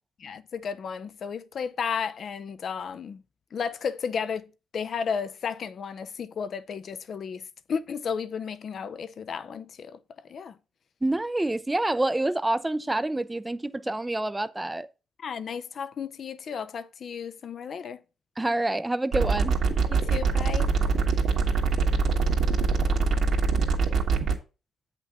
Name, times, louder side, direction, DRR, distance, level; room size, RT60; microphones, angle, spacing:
voice 1, 0.2-3.2 3.5-7.4 7.7-10.0 10.3-10.5 15.2-18.0 19.9-20.7, left 6 dB, 55° left, 0.6 m, -33 dB
voice 2, 11.0-14.9 18.4-19.5, right 2 dB, 15° right, 0.5 m, -27 dB
sound 1, 19.1-24.3, right 5 dB, 70° right, 1.9 m, -23 dB
8.2 x 5.9 x 3.6 m
cardioid pair, 90°, 0 cm